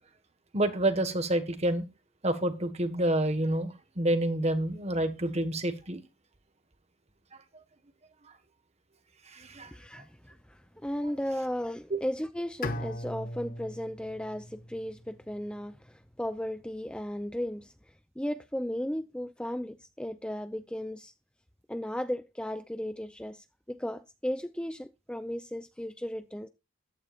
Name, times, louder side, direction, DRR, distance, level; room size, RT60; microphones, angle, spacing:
voice 1, 0.5-1.8 2.2-6.0 9.3-9.7 11.9-12.0, right 1 dB, 35° right, 1.6 m, -28 dB
voice 2, 9.7-17.7 18.2-21.1 21.7-26.5, equal, 5° left, 0.5 m, -35 dB
Bowed string instrument, 12.6-15.6, left 1 dB, 45° left, 1.3 m, -39 dB
14.5 x 12.0 x 2.5 m
head